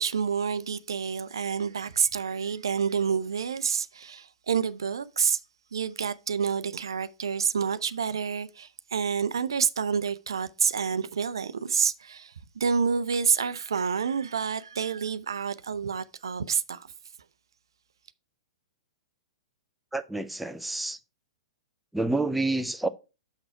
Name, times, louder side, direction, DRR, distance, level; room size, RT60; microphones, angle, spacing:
voice 1, 0.0-5.4 5.7-16.9, right 6 dB, 65° right, 0.5 m, -28 dB
voice 2, 19.9-21.0 21.9-22.9, right 2 dB, ahead, 0.5 m, -28 dB
6.3 x 6.1 x 4.6 m
figure-of-eight pair, 105°, 3 cm